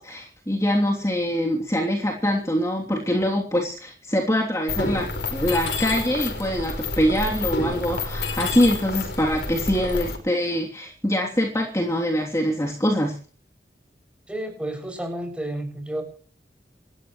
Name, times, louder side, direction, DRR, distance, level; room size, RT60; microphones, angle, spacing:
voice 1, 0.0-13.1, equal, 20° left, -1 dB, 3.1 m, -24 dB
Mechanisms, 4.7-10.2, left 3 dB, 70° left, 5.1 m, -29 dB
voice 2, 14.3-16.0, right 1 dB, 5° right, 4 dB, 6.8 m, -31 dB
28.5 x 13.5 x 3.2 m, 0.41 s
head